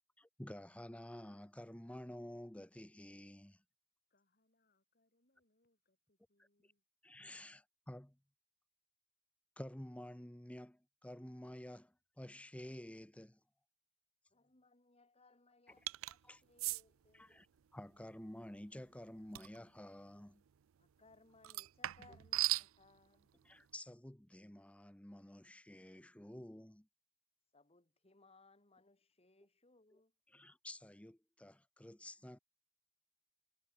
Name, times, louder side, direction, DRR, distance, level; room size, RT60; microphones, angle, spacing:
voice 1, 0.2-3.6 7.0-8.2 9.6-13.4 16.2-16.4 17.1-17.5 17.7-20.4 23.4-26.9 29.9-30.0 30.3-32.4, left 1 dB, 5° left, 0.7 m, -51 dB
voice 2, 4.1-6.8, left 2 dB, 45° left, 7.4 m, -81 dB
voice 3, 14.3-17.4 20.8-23.3 27.5-30.1, left 3 dB, 30° left, 1.9 m, -67 dB
sound 1, 15.9-16.1 16.6-16.8 19.3-19.6 21.4-22.7, right 18 dB, 75° right, 0.4 m, -37 dB
head